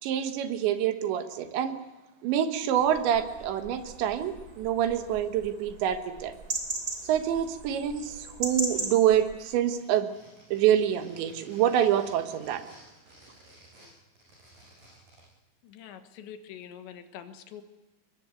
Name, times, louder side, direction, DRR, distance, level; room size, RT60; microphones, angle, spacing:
voice 1, 0.0-1.8 2.2-6.3 7.0-10.1 10.5-12.7, right 10 dB, 75° right, 8 dB, 3.5 m, -26 dB
sound 1, 2.8-9.3, right 2 dB, 25° right, 2.7 m, -38 dB
sound 2, 8.4-9.1 9.3-15.3, right 1 dB, 45° right, 8.4 m, -55 dB
voice 2, 15.6-17.6, left 9 dB, 75° left, 8 dB, 3.6 m, -45 dB
22.0 x 21.0 x 8.3 m, 1.1 s
omnidirectional pair, 5.3 m